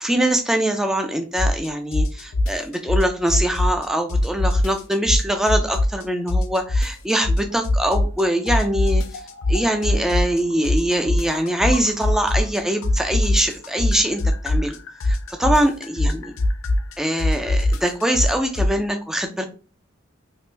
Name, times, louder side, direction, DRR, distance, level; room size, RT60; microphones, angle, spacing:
voice 1, 0.0-9.0 9.5-14.8 15.0-16.3 17.0-19.4, right 1 dB, ahead, 5 dB, 0.3 m, -23 dB
sound 1, 1.4-1.7 1.9-6.0 6.3-8.2 8.5-12.6 12.8-18.7, left 1 dB, 85° left, 0.5 m, -21 dB
3.1 x 2.5 x 3.2 m, 0.35 s
head